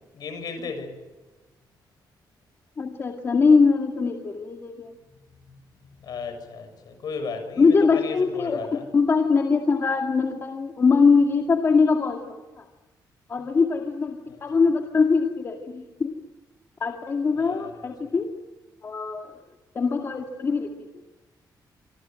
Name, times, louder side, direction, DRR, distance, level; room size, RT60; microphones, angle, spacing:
voice 1, 0.1-1.0 6.0-8.8 14.3-14.4 17.4-17.7, left 5 dB, 60° left, 8 dB, 7.1 m, -35 dB
voice 2, 2.8-4.9 7.6-12.6 13.3-16.1 16.8-18.3 18.8-19.4 19.7-20.7, left 4 dB, 35° left, 3 dB, 2.1 m, -22 dB
27.5 x 26.0 x 7.7 m, 1.2 s
wide cardioid pair, 180°, 8 cm